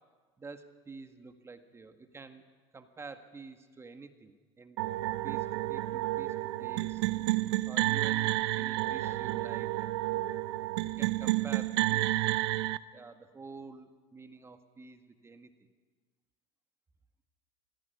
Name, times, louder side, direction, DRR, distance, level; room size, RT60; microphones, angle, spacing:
voice 1, 0.4-2.4 2.7-4.8 5.2-7.0 7.7-9.7 11.0-12.1 12.9-15.5, right 4 dB, 20° right, 7 dB, 1.9 m, -48 dB
sound 1, 4.8-12.8, right 18 dB, 75° right, 0.7 m, -30 dB
22.5 x 16.5 x 9.7 m, 1.4 s
supercardioid pair, 105°, 14 cm